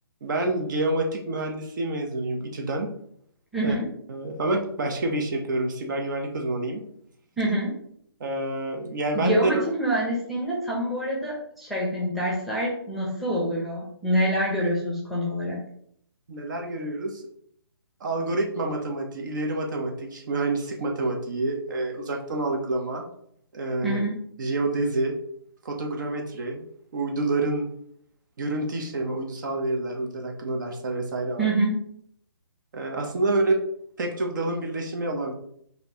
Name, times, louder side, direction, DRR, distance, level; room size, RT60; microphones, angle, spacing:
voice 1, 0.2-2.9 3.6-3.7 4.1-6.8 8.2-9.6 16.3-17.2 18.0-23.0 23.5-24.0 24.4-25.1 25.6-26.6 26.9-27.7 28.4-31.5 32.7-33.6 34.0-35.3, right 2 dB, 50° right, 3 dB, 0.8 m, -28 dB
voice 2, 3.5-3.9 7.4-7.8 9.1-15.6 23.8-24.2 31.4-31.8, right 1 dB, ahead, -5 dB, 0.8 m, -26 dB
5.1 x 2.7 x 2.9 m, 0.68 s
hypercardioid pair, 150°, 13 cm